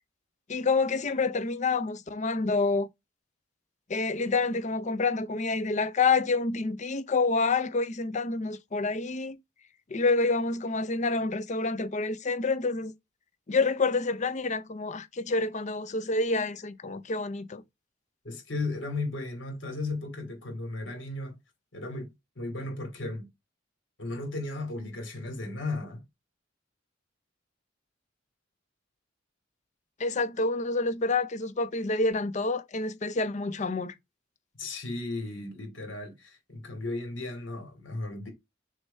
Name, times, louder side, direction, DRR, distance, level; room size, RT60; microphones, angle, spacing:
voice 1, 0.5-2.9 3.9-9.4 9.9-12.9 13.5-17.6 30.0-33.9, left 3 dB, 40° left, 0.6 m, -28 dB
voice 2, 18.2-21.4 21.7-23.3 24.0-26.0 34.6-38.3, left 2 dB, 75° left, 2.6 m, -35 dB
6.5 x 3.3 x 5.5 m
head